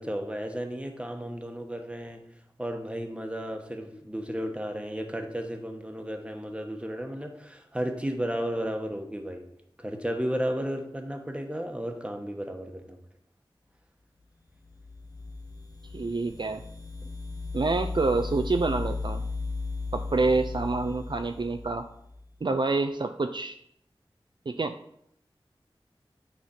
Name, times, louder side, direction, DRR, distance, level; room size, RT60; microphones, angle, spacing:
voice 1, 0.0-2.2 2.6-9.5 9.8-13.0, equal, 10° right, 4 dB, 1.1 m, -33 dB
sound 1, 14.7-22.2, left 3 dB, 40° left, 1.0 m, -36 dB
voice 2, 15.9-16.6 17.5-19.2 19.9-21.9 22.4-23.6 24.5-24.8, right 3 dB, 55° right, 7 dB, 0.4 m, -27 dB
9.2 x 4.2 x 4.2 m, 0.73 s
wide cardioid pair, 45°, 9 cm